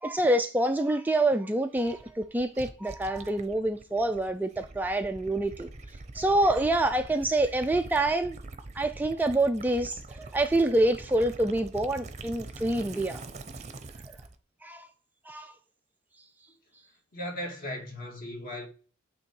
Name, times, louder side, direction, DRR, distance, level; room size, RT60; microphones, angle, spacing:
voice 1, 0.0-5.7 6.1-8.4 8.7-13.2 14.6-14.9 15.3-15.5, right 1 dB, 10° right, 0.4 m, -26 dB
Gurgling / Liquid, 1.8-14.3, right 2 dB, 30° right, 0.7 m, -44 dB
voice 2, 17.1-18.7, left 1 dB, 45° left, 2.1 m, -37 dB
8.8 x 3.6 x 4.6 m
head